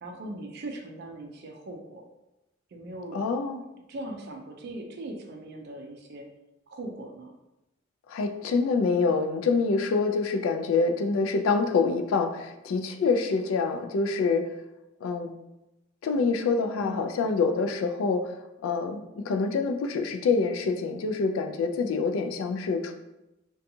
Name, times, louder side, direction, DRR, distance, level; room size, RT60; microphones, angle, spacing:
voice 1, 0.0-2.0 2.7-3.2 3.9-6.3 6.7-7.3 16.8-17.1, right 1 dB, 55° right, 2 dB, 0.4 m, -39 dB
voice 2, 3.1-3.6 8.1-14.5 15.0-15.3 16.0-18.3 18.6-22.9, left 4 dB, 90° left, 6 dB, 0.3 m, -26 dB
2.7 x 2.3 x 2.6 m, 0.94 s
head